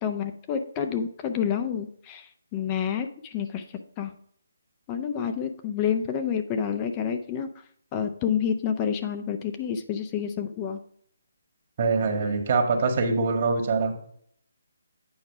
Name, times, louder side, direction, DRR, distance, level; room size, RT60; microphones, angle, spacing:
voice 1, 0.0-3.6 4.0-4.1 4.9-7.5 7.9-10.8, left 8 dB, 25° left, 7 dB, 0.5 m, -29 dB
voice 2, 11.8-13.9, right 4 dB, 45° right, 4 dB, 1.6 m, -24 dB
8.7 x 4.7 x 4.8 m, 0.63 s
figure-of-eight pair, 150°, 0 cm